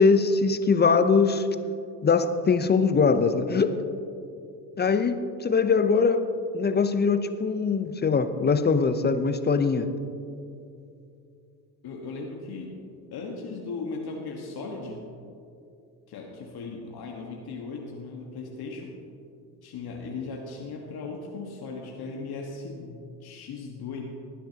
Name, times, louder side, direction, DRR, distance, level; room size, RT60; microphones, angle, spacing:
voice 1, 0.0-1.5 2.0-3.8 4.8-9.9, left 5 dB, 20° left, 10 dB, 0.7 m, -22 dB
voice 2, 11.8-12.8 13.1-15.1 16.1-19.0 19.6-24.0, left 4 dB, 50° left, 1 dB, 1.6 m, -37 dB
19.5 x 10.0 x 2.9 m, 2.6 s
hypercardioid pair, 70°, 49 cm